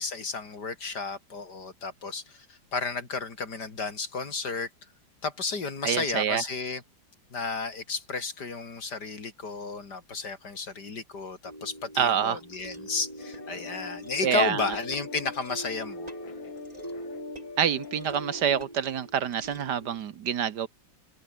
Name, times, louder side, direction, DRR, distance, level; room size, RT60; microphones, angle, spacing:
voice 1, 0.0-4.7 5.2-6.8 7.3-16.1, left 4 dB, 60° left, 3.7 m, -33 dB
voice 2, 5.8-6.4 12.0-12.4 14.2-14.6 17.6-20.7, right 8 dB, 65° right, 1.6 m, -27 dB
sound 1, 11.5-20.0, right 1 dB, 20° right, 7.7 m, -42 dB
sound 2, 13.2-18.6, left 5 dB, 85° left, 3.4 m, -44 dB
omnidirectional pair, 2.0 m